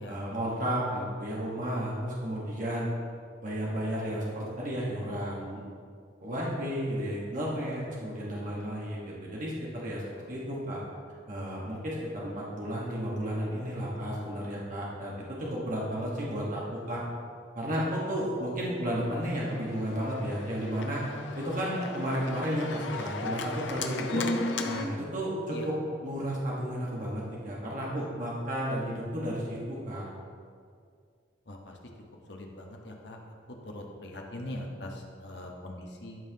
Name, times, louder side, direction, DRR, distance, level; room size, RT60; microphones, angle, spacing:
voice 1, 0.1-2.9 3.4-5.6 6.2-10.0 10.3-10.8 11.3-17.0 17.5-21.0 21.3-24.3 24.6-30.1, equal, 45° right, -5 dB, 1.3 m, -33 dB
Organ, 19.0-24.9, left 2 dB, 80° left, 0.6 m, -36 dB
voice 2, 31.5-31.8 32.3-33.2 33.6-36.2, left 1 dB, 65° left, 1 dB, 1.1 m, -41 dB
12.5 x 5.7 x 2.8 m, 2.2 s
head